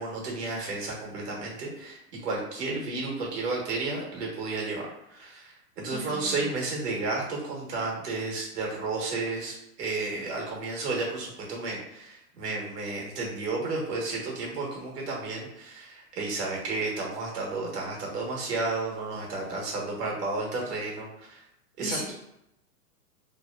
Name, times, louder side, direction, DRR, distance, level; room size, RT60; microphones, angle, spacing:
voice 1, 0.0-21.4 21.8-22.0, right 3 dB, 80° right, -2 dB, 1.1 m, -32 dB
voice 2, 5.9-6.3 21.8-22.1, equal, 10° left, -9 dB, 0.5 m, -36 dB
2.8 x 2.1 x 2.2 m, 0.82 s
hypercardioid pair, 135°, 46 cm